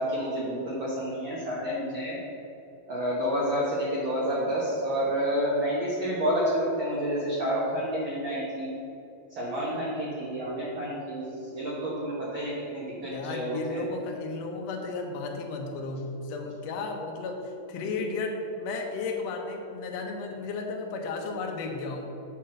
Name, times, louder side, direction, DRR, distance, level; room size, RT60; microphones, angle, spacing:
voice 1, 0.0-2.2 2.9-8.7 9.3-13.8, equal, 75° right, -6 dB, 1.1 m, -29 dB
voice 2, 13.1-22.0, left 3 dB, 70° left, 2 dB, 1.6 m, -34 dB
7.9 x 4.5 x 6.4 m, 2.7 s
omnidirectional pair, 4.0 m